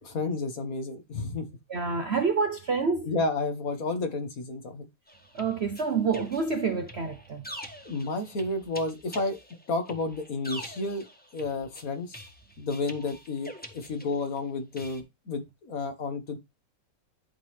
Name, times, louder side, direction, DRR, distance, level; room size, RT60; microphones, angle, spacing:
voice 1, 0.0-1.5 3.0-4.9 7.9-9.4 9.7-12.2 12.6-16.4, left 3 dB, 55° left, 1.8 m, -31 dB
voice 2, 1.7-3.1 5.3-7.4, right 5 dB, 50° right, 0.8 m, -28 dB
sound 1, 5.1-14.4 14.8-15.0, equal, 5° left, 1.1 m, -45 dB
11.5 x 3.9 x 3.2 m
omnidirectional pair, 1.9 m